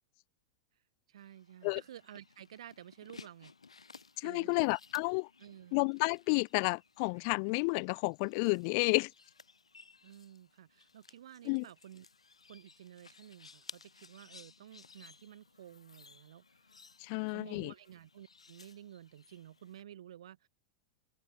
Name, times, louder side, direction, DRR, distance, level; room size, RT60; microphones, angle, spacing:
voice 1, 1.1-3.5 4.1-4.7 5.4-5.9 8.8-9.0 10.0-12.1 12.5-16.7 17.1-20.5, right 11 dB, 70° right, 2.3 m, -52 dB
sound 1, 1.2-19.8, left 4 dB, 85° left, 1.1 m, -58 dB
voice 2, 4.2-5.3 5.7-9.1 11.5-11.6 17.0-17.7, left 35 dB, 50° left, 0.4 m, -31 dB
figure-of-eight pair, 95°, 3 cm